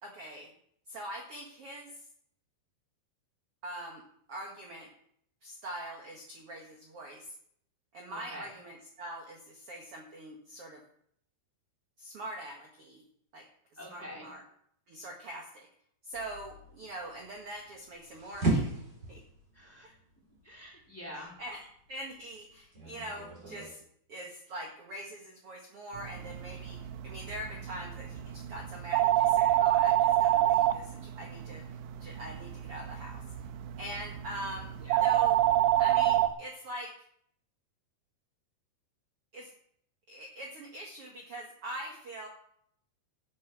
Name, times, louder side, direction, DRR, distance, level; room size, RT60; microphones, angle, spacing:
voice 1, 0.0-0.5 0.9-2.0 3.6-4.0 4.3-4.9 5.4-7.3 7.9-10.8 12.0-13.0 13.3-13.4 13.9-14.4 14.9-15.7 16.0-18.7 19.1-19.2 19.8-19.9 21.4-23.8 24.1-26.8 27.0-31.6 32.0-33.2 33.8-34.7 35.0-35.4 35.8-36.9 39.3-39.5 40.1-42.3, right 1 dB, 60° right, 0 dB, 1.5 m, -43 dB
voice 2, 8.1-8.5 13.8-14.3 19.5-21.3 34.7-35.1, equal, 5° left, -2 dB, 3.2 m, -47 dB
sound 1, 16.1-23.7, right 2 dB, 25° right, 4.4 m, -37 dB
sound 2, 26.0-36.3, right 13 dB, 80° right, 2.9 m, -28 dB
12.0 x 10.5 x 6.1 m, 0.68 s
omnidirectional pair, 5.1 m